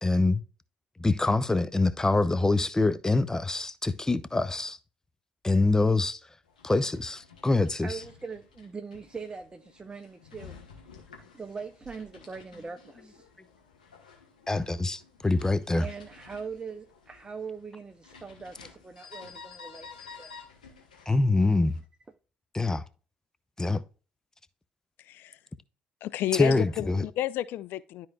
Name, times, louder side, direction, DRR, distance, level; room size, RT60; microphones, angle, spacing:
voice 1, 0.0-0.4 1.0-4.8 5.4-6.2 6.6-8.0 14.5-15.8 21.1-21.7 22.5-22.8 23.6-23.8 26.3-27.1, left 2 dB, 15° left, 0.7 m, -25 dB
sound 1, 6.5-21.8, left 5 dB, 80° left, 1.4 m, -52 dB
voice 2, 7.6-10.5 11.3-13.3 15.8-20.3, right 5 dB, 20° right, 0.7 m, -41 dB
voice 3, 25.0-25.4 26.0-28.1, left 13 dB, 55° left, 0.4 m, -31 dB
12.5 x 4.4 x 2.4 m
figure-of-eight pair, 50°, 4 cm